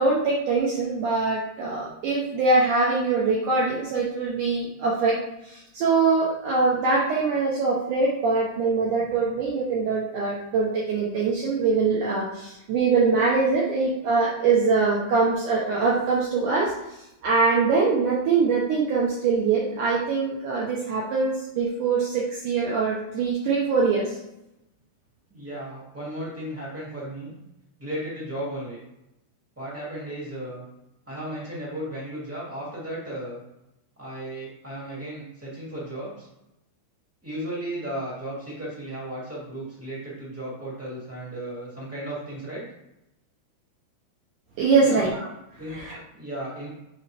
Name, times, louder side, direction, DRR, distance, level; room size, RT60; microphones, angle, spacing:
voice 1, 0.0-5.2 5.4-24.2 44.6-45.3 45.6-46.0, right 4 dB, 75° right, -4 dB, 1.9 m, -23 dB
voice 2, 25.3-27.3 27.8-28.8 29.5-30.6 31.1-33.4 34.0-36.3 37.2-42.6 44.8-45.1 45.6-46.7, right 1 dB, 10° right, -6 dB, 0.8 m, -35 dB
7.4 x 4.3 x 3.4 m, 0.88 s
omnidirectional pair, 4.6 m